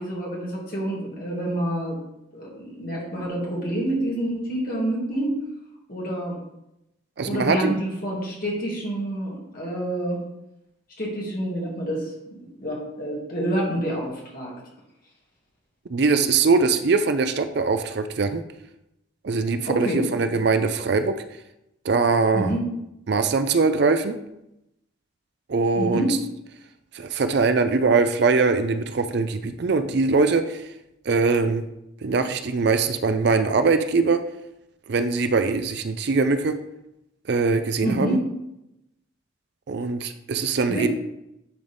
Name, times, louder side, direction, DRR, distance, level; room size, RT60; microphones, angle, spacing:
voice 1, 0.0-2.0 2.3-5.4 5.9-6.4 7.2-10.2 11.0-12.1 12.6-14.5 19.6-20.1 22.3-22.6 25.8-26.2 37.8-38.2 40.7-40.9, right 1 dB, 45° left, -4 dB, 2.2 m, -27 dB
voice 2, 7.2-7.8 15.9-18.4 19.2-21.2 21.8-22.5 23.1-24.2 25.5-26.1 26.9-30.7 31.1-31.6 32.0-34.2 34.9-36.6 37.3-38.2 39.7-40.9, right 4 dB, 55° right, 9 dB, 0.4 m, -22 dB
10.5 x 4.0 x 3.4 m, 0.85 s
head